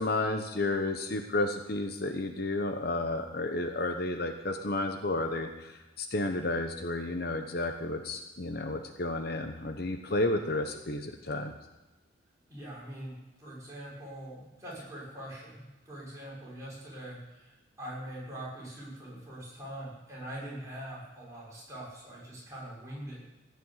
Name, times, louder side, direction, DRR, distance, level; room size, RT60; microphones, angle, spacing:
voice 1, 0.0-11.5, left 2 dB, 50° left, 5 dB, 1.0 m, -32 dB
voice 2, 12.5-13.1 13.4-23.2, right 1 dB, 15° right, -6 dB, 6.0 m, -43 dB
15.5 x 6.9 x 9.7 m, 1.1 s
head